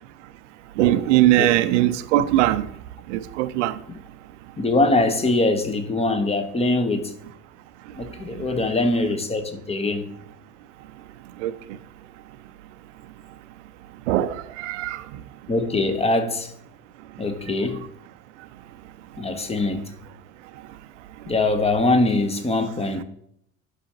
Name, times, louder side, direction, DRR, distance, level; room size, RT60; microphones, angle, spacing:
voice 1, 0.8-2.6 3.4-3.7 11.4-11.5 14.1-14.3 14.6-15.0, right 14 dB, 55° right, 0.6 m, -19 dB
voice 2, 4.6-7.1 8.0-10.1 15.5-16.5 17.2-17.8 19.2-19.9 21.3-23.0, left 2 dB, 15° left, 1.0 m, -22 dB
11.0 x 6.2 x 2.9 m
figure-of-eight pair, 70°, 43 cm